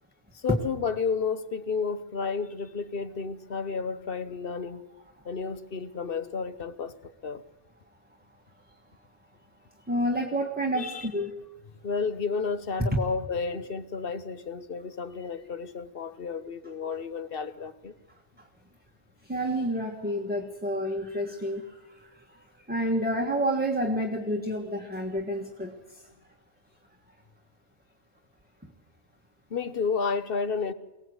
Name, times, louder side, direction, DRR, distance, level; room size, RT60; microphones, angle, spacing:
voice 1, 0.3-4.9 5.2-7.4 10.7-11.1 11.8-17.9 29.5-30.7, left 5 dB, 55° left, 1.2 m, -31 dB
voice 2, 9.9-11.4 18.4-18.5 19.2-26.1, equal, 10° right, 1.5 m, -30 dB
23.5 x 18.0 x 8.0 m
omnidirectional pair, 1.2 m